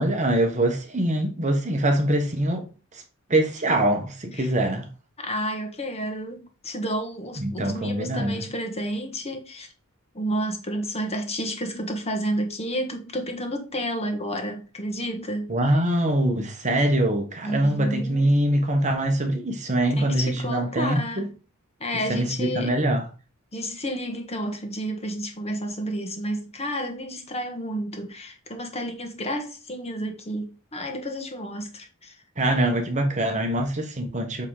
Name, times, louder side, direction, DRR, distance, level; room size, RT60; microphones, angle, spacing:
voice 1, 0.0-2.7 2.9-3.0 3.3-4.9 7.4-8.4 15.5-21.3 22.1-23.0 32.4-34.5, right 1 dB, 35° right, 1.4 m, -23 dB
voice 2, 5.2-9.7 10.1-15.5 17.4-18.3 20.0-21.3 21.8-22.8 23.5-32.2, equal, 30° left, 1.6 m, -31 dB
8.1 x 3.8 x 4.8 m
head